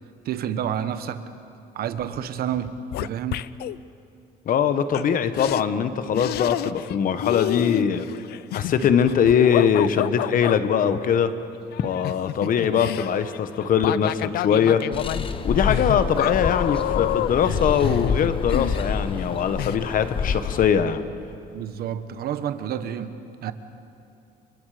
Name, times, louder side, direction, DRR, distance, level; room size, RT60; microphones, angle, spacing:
voice 1, 0.2-1.2 1.7-2.7 3.0-3.4 21.5-23.2 23.4-23.5, right 10 dB, 65° right, 11 dB, 1.2 m, -29 dB
sound 1, 2.0-2.3 2.5-3.8 4.9-5.0 5.4-5.6 6.2-7.0 7.2-10.6 11.7-19.3 19.6-19.8, left 14 dB, 70° left, 0.5 m, -29 dB
voice 2, 4.5-8.0 8.5-11.3 11.8-14.8 15.4-21.0, left 7 dB, 55° left, 11 dB, 1.3 m, -22 dB
sound 2, 14.9-20.7, left 5 dB, 30° left, 1.1 m, -28 dB
29.5 x 24.5 x 5.1 m, 2.7 s
cardioid pair, 110°, 17 cm